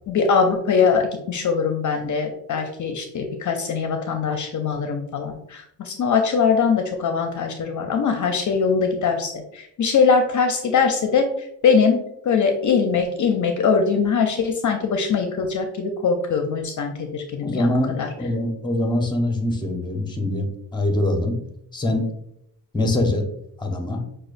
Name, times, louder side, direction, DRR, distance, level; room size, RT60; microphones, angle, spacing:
voice 1, 0.1-12.0 12.2-17.7 18.0-18.1, left 5 dB, 50° left, 5 dB, 0.5 m, -22 dB
voice 2, 17.4-21.4 21.7-22.1 22.7-23.2 23.6-24.0, left 1 dB, 10° left, 3 dB, 0.8 m, -23 dB
6.0 x 2.3 x 2.5 m, 0.76 s
cardioid pair, 85°, 38 cm